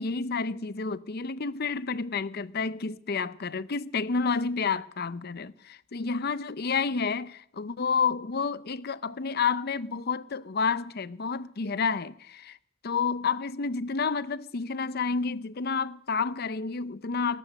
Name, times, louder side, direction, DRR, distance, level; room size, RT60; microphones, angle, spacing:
voice 1, 0.0-12.6 12.8-17.4, left 5 dB, 55° left, 0.7 m, -30 dB
20.0 x 10.0 x 6.6 m
head